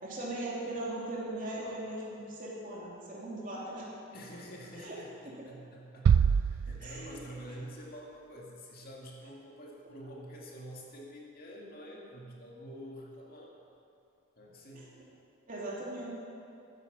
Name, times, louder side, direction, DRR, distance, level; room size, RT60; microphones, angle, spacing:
voice 1, 0.0-3.9 4.8-5.0 6.8-7.2 14.7-14.8 15.5-16.1, right 1 dB, 40° right, -5 dB, 3.2 m, -39 dB
voice 2, 4.1-13.5 14.4-15.0, equal, 45° left, -3 dB, 2.3 m, -47 dB
sound 1, 6.1-7.6, right 7 dB, 80° right, 0.3 m, -26 dB
14.0 x 9.4 x 7.3 m, 2.7 s
head